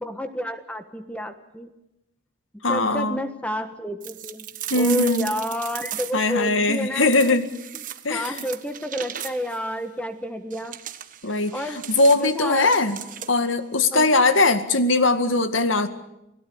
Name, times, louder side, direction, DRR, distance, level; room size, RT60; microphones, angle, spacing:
voice 1, 0.0-1.7 2.7-7.4 7.7-7.8 8.1-10.8 11.5-11.8 12.2-12.7 13.9-14.2, left 1 dB, 5° left, 8 dB, 1.3 m, -30 dB
voice 2, 2.6-3.2 4.7-5.3 6.1-7.5 8.0-8.3 11.2-11.6 11.9-13.0 13.3-15.9, left 2 dB, 80° left, 10 dB, 2.0 m, -20 dB
sound 1, 4.0-6.4 7.0-9.6 10.5-13.5, right 11 dB, 40° right, 1.3 m, -37 dB
30.0 x 17.5 x 7.0 m, 0.90 s
head